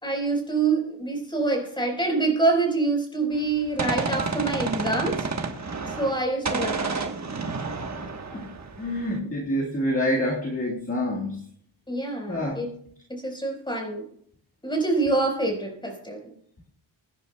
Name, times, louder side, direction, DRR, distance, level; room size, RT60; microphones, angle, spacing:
voice 1, 0.0-5.3 6.0-7.0 11.9-12.7 13.1-14.0 14.6-16.2, right 3 dB, 10° left, 1 dB, 4.4 m, -26 dB
Gunshot gunfire, 3.3-6.2 6.5-9.2, right 4 dB, 35° right, 1.2 m, -30 dB
voice 2, 8.0-8.5 8.8-11.4 12.3-12.6, left 1 dB, 25° left, -2 dB, 1.7 m, -27 dB
22.0 x 10.5 x 2.2 m, 0.65 s
wide cardioid pair, 135°, 49 cm